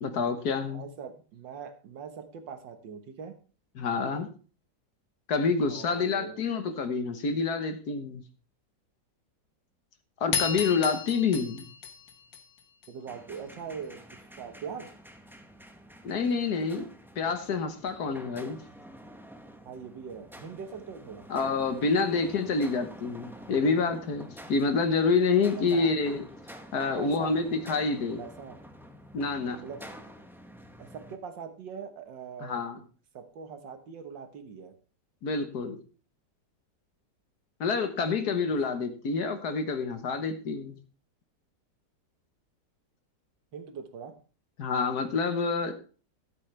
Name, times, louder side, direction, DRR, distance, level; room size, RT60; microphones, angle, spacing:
voice 1, 0.0-0.8 3.8-4.3 5.3-8.2 10.2-11.6 16.0-16.9 17.2-18.6 21.3-26.3 26.7-28.2 29.1-29.6 32.4-32.8 35.2-35.8 37.6-40.8 44.6-45.7, left 4 dB, 65° left, 8 dB, 1.7 m, -27 dB
voice 2, 0.7-3.3 5.7-6.4 10.3-10.4 12.9-14.0 14.4-14.9 19.7-21.3 25.6-25.9 27.0-27.3 28.2-28.6 29.6-29.8 30.8-32.6 33.1-34.7 43.5-44.1, right 6 dB, 90° right, 8 dB, 1.9 m, -41 dB
sound 1, 10.3-12.9, left 7 dB, 85° left, 1.9 m, -33 dB
sound 2, 13.1-31.2, equal, 5° right, 0.4 m, -48 dB
13.5 x 7.8 x 3.3 m, 0.37 s
omnidirectional pair, 1.9 m